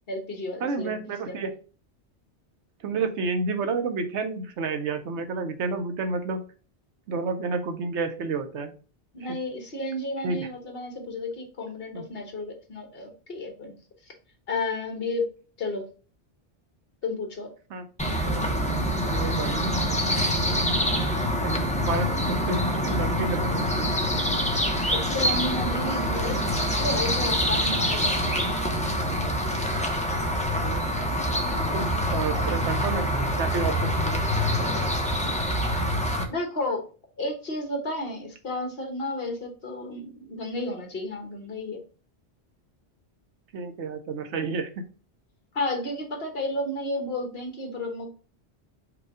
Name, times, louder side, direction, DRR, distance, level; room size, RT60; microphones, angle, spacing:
voice 1, 0.1-1.5 9.1-13.7 14.5-15.3 15.6-15.9 17.0-17.5 24.9-28.5 36.3-36.8 37.2-41.8 45.5-48.1, left 2 dB, 60° left, 3 dB, 1.3 m, -32 dB
voice 2, 0.6-1.5 2.8-6.4 7.1-8.7 10.2-10.5 11.9-12.1 17.7-17.9 19.0-20.0 21.4-23.9 27.7-27.8 30.5-30.8 31.4-33.1 33.4-34.2 43.5-44.8, right 4 dB, 85° right, 7 dB, 1.0 m, -30 dB
sound 1, 18.0-36.2, equal, 10° left, 0.4 m, -25 dB
4.8 x 2.3 x 4.8 m, 0.37 s
omnidirectional pair, 1.2 m